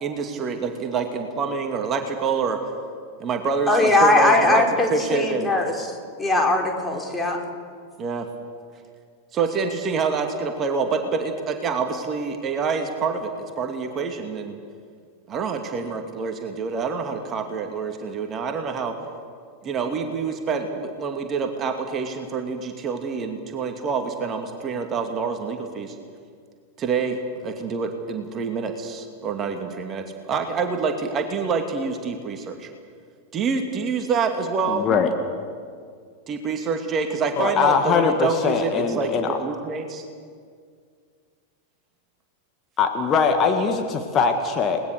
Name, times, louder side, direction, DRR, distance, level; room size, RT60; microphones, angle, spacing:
voice 1, 0.0-2.6 3.2-4.6 4.9-5.5 8.0-8.3 9.3-14.6 15.3-19.0 19.6-26.0 26.8-32.7 33.3-34.9 36.3-40.0, right 5 dB, 30° right, 5 dB, 2.3 m, -27 dB
voice 2, 3.7-5.7 6.2-7.4, left 2 dB, 10° left, 1 dB, 4.3 m, -20 dB
voice 3, 34.8-35.1 37.4-39.3 42.8-44.8, left 5 dB, 30° left, 4 dB, 2.1 m, -21 dB
30.0 x 19.5 x 6.7 m, 2.1 s
figure-of-eight pair, 90°, 0 cm